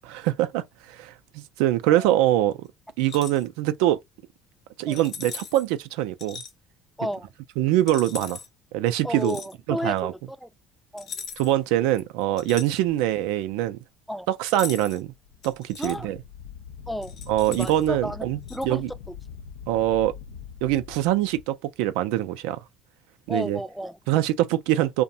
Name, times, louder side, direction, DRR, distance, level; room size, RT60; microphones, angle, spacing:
voice 1, 0.0-2.7 3.0-4.0 4.8-6.4 7.6-8.4 8.7-9.4 9.7-10.1 11.4-13.8 14.3-15.1 15.4-16.2 17.3-18.9 19.7-20.2 20.6-22.6 23.3-23.6 24.1-25.0, right 14 dB, 75° right, 0.3 m, -24 dB
sound 1, 3.0-3.4 4.9-5.7 6.2-6.5 7.9-8.5 9.2-9.5 11.0-11.6 11.9-13.1 14.5-15.0 15.4-16.0 17.0-17.9 18.5-18.7, left 6 dB, 60° left, 0.7 m, -39 dB
voice 2, 9.0-10.5 10.9-11.1 14.1-14.3 15.8-16.1 16.9-17.2 17.5-18.2 18.5-18.8 23.3-24.0, equal, ahead, 0.4 m, -32 dB
Wind, 15.0-21.5, left 7 dB, 80° left, 0.3 m, -42 dB
2.5 x 2.0 x 2.7 m
hypercardioid pair, 70°, 0 cm